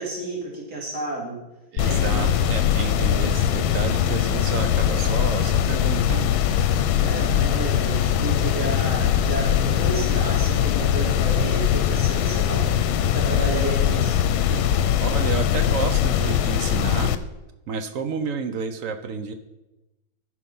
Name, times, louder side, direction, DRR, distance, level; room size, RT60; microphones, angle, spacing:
voice 1, 0.0-1.4 1.8-2.4 6.9-12.7 13.0-14.8, right 2 dB, 50° right, -3 dB, 2.9 m, -31 dB
voice 2, 1.7-6.3 15.0-17.1 17.7-19.3, right 6 dB, 70° right, 8 dB, 0.8 m, -30 dB
sound 1, 1.8-17.1, left 9 dB, 85° left, 1.4 m, -21 dB
13.5 x 5.0 x 5.5 m, 1.0 s
omnidirectional pair, 2.2 m